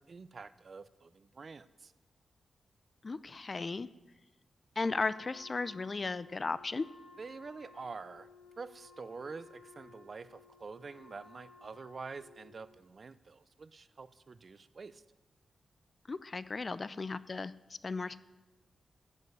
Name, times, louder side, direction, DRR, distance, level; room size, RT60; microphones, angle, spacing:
voice 1, 0.0-1.9 7.2-8.3 8.6-15.0, right 4 dB, 40° right, 16 dB, 0.5 m, -47 dB
voice 2, 3.0-3.9 4.8-6.9 16.1-18.2, left 3 dB, 35° left, 16 dB, 0.4 m, -36 dB
Wind instrument woodwind instrument, 4.8-12.7, left 3 dB, 75° left, 1.6 m, -57 dB
15.0 x 5.5 x 9.3 m, 1.1 s
wide cardioid pair, 125°, 0 cm